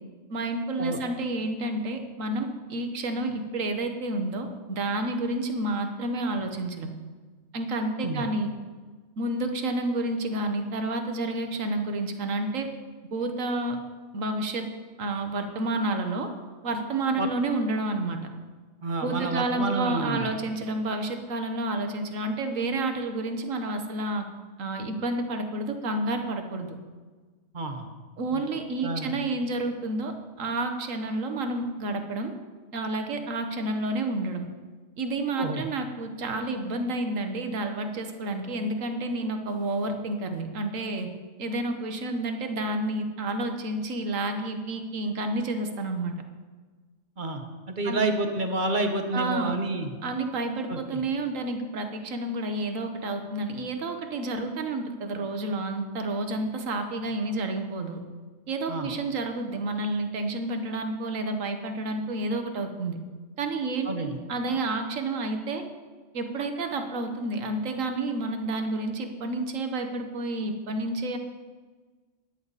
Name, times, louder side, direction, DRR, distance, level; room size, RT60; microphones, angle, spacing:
voice 1, 0.3-6.9 7.5-8.5 9.2-12.7 13.1-13.8 14.1-14.7 15.0-16.3 16.6-18.2 19.0-24.3 24.6-26.8 28.2-32.3 32.7-34.4 35.0-41.1 41.4-46.1 47.8-48.0 49.1-49.5 50.0-58.0 58.5-63.0 63.4-65.6 66.1-71.2, right 2 dB, 85° right, 6 dB, 1.5 m, -30 dB
voice 2, 18.8-20.3 27.5-27.8 28.3-28.4 28.8-29.1 35.4-35.6 47.2-49.9 50.7-51.0 58.7-58.9 63.8-64.2, right 2 dB, 40° right, 5 dB, 1.2 m, -29 dB
13.5 x 10.5 x 4.1 m, 1.4 s
omnidirectional pair, 1.3 m